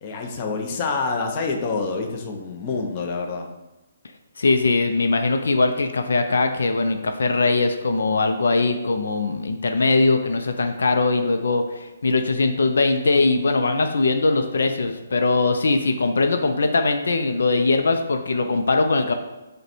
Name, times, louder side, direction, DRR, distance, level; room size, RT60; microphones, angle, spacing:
voice 1, 0.0-3.5 14.9-15.0, left 4 dB, 30° left, 2 dB, 0.6 m, -27 dB
voice 2, 4.4-19.1, left 3 dB, 80° left, 6 dB, 0.4 m, -21 dB
5.2 x 2.2 x 4.3 m, 1.0 s
hypercardioid pair, 160°, 0 cm